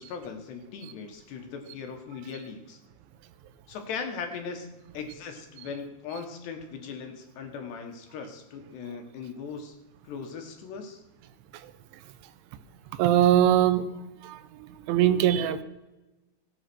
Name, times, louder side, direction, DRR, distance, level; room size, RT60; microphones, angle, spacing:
voice 1, 0.0-2.8 3.7-4.7 4.9-9.8 10.0-11.0, left 5 dB, 70° left, 5 dB, 3.5 m, -39 dB
voice 2, 13.0-13.9 14.2-15.6, right 11 dB, 85° right, 11 dB, 3.2 m, -22 dB
16.5 x 9.1 x 6.2 m, 1.1 s
omnidirectional pair, 5.2 m